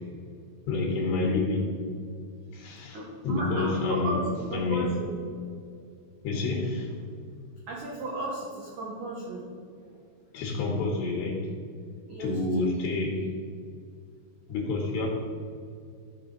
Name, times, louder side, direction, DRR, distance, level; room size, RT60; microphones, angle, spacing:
voice 1, 0.7-1.7 2.5-3.0 3.2-4.2 4.5-4.9 6.2-6.9 10.3-11.5 12.2-13.3 14.5-15.1, left 3 dB, 75° left, -2 dB, 3.1 m, -28 dB
voice 2, 2.7-5.1 7.7-9.5 9.8-10.0 12.1-12.7, right 2 dB, 75° right, -3 dB, 1.8 m, -35 dB
14.0 x 6.6 x 3.9 m, 2.4 s
omnidirectional pair, 5.7 m